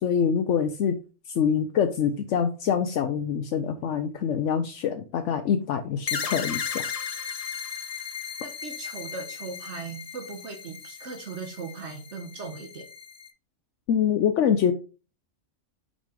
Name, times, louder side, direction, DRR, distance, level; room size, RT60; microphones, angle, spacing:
voice 1, 0.0-1.0 1.3-6.8 13.9-14.7, left 7 dB, 75° left, 7 dB, 1.0 m, -25 dB
sound 1, 6.1-13.3, left 6 dB, 40° left, 0.6 m, -36 dB
voice 2, 8.4-12.9, right 4 dB, 65° right, 3 dB, 1.3 m, -38 dB
6.2 x 4.1 x 5.0 m, 0.34 s
omnidirectional pair, 1.3 m